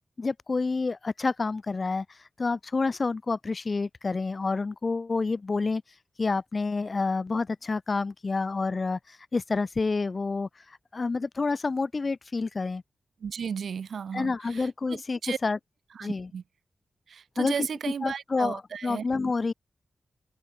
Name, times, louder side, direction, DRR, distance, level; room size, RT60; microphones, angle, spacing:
voice 1, 0.2-5.8 6.2-12.8 14.1-15.6 16.0-16.3 17.4-17.5 18.0-19.5, left 3 dB, 35° left, 0.6 m, -29 dB
voice 2, 13.2-15.4 16.0-16.4 17.1-19.0, right 7 dB, 85° right, 1.8 m, -35 dB
open air
wide cardioid pair, 175°, 0 cm